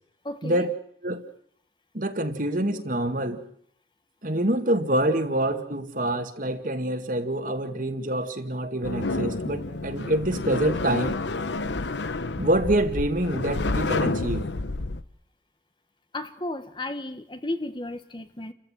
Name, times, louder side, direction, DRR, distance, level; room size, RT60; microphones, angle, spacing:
voice 1, 0.2-0.7 16.1-18.5, left 1 dB, 25° left, 1.3 m, -33 dB
voice 2, 1.9-3.4 4.2-11.1 12.4-14.5, right 1 dB, 50° right, 2.2 m, -26 dB
sound 1, 8.8-15.0, left 2 dB, 80° left, 1.0 m, -29 dB
29.5 x 15.0 x 9.2 m
head